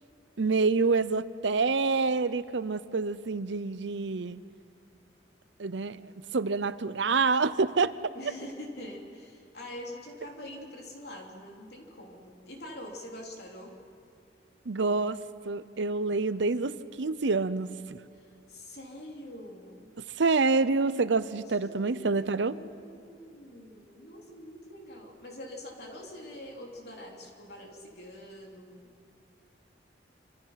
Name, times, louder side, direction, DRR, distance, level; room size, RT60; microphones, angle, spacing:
voice 1, 0.4-4.4 5.6-6.0 6.3-7.9 14.7-15.2 15.5-18.0 20.2-22.6, right 4 dB, 80° right, 15 dB, 0.7 m, -27 dB
voice 2, 8.1-13.7 18.1-19.9 21.5-28.9, left 1 dB, 60° left, 0 dB, 3.5 m, -45 dB
26.0 x 25.5 x 5.9 m, 2.3 s
head